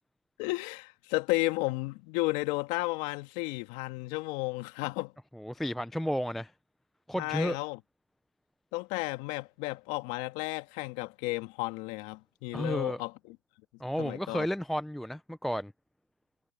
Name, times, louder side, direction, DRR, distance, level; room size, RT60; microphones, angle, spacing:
voice 1, 0.4-5.1 7.1-7.8 8.7-13.4 14.0-14.5, left 23 dB, 35° left, 2.2 m, -33 dB
voice 2, 5.3-6.5 7.1-7.6 12.5-13.0 13.8-15.7, equal, ahead, 0.4 m, -32 dB
hypercardioid pair, 140°, 20 cm